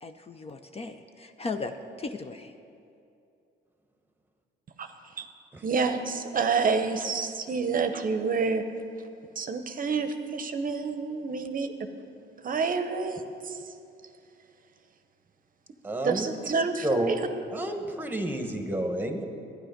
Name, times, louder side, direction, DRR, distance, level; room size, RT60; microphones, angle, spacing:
voice 1, 0.0-2.5, left 3 dB, 30° left, 7 dB, 0.6 m, -37 dB
voice 2, 5.6-8.6 9.4-11.7 12.4-13.7 16.0-17.3, right 4 dB, 45° right, 8 dB, 0.7 m, -28 dB
voice 3, 15.8-16.3 16.8-17.1 17.5-19.3, right 1 dB, 10° right, 6 dB, 1.1 m, -30 dB
12.0 x 10.0 x 5.2 m, 2.6 s
cardioid pair, 90°, 20 cm